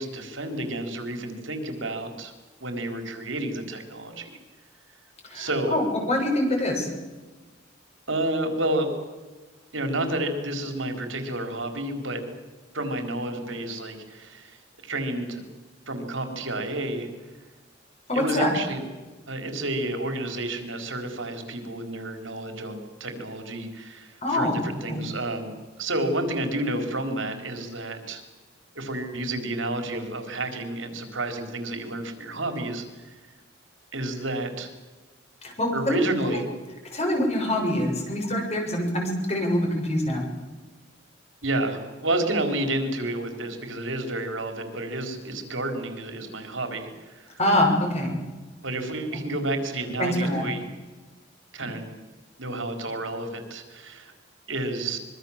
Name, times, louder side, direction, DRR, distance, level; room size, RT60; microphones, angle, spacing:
voice 1, 0.0-2.3 2.6-4.3 5.3-5.8 8.1-8.9 9.7-12.2 12.7-15.4 15.9-17.1 18.1-18.8 19.3-25.5 25.8-28.2 28.7-33.2 33.9-34.7 35.7-36.5 41.4-47.4 48.6-50.6 51.5-51.9 52.4-54.1 54.5-55.0, right 1 dB, 75° right, 5 dB, 4.4 m, -30 dB
voice 2, 5.2-6.9 18.1-18.5 24.2-24.6 24.9-25.0 35.4-36.0 36.3-36.4 36.9-40.2 47.4-48.2 50.0-50.4, left 1 dB, 35° left, 2 dB, 6.8 m, -25 dB
25.5 x 23.0 x 7.5 m, 1.3 s
head